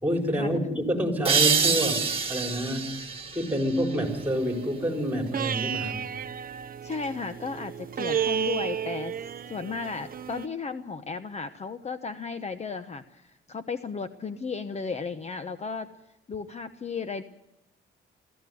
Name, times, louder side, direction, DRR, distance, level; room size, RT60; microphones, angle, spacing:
voice 1, 0.0-2.9 3.3-6.0, equal, 10° right, 3 dB, 4.6 m, -28 dB
sound 1, 1.2-4.6, right 5 dB, 30° right, 2.4 m, -27 dB
sound 2, 4.0-10.5, right 8 dB, 45° right, 0.8 m, -33 dB
voice 2, 6.8-9.2 9.5-15.9 16.3-17.2, left 5 dB, 35° left, 10 dB, 1.1 m, -34 dB
22.0 x 15.0 x 9.4 m, 0.89 s
cardioid pair, 90°, 20 cm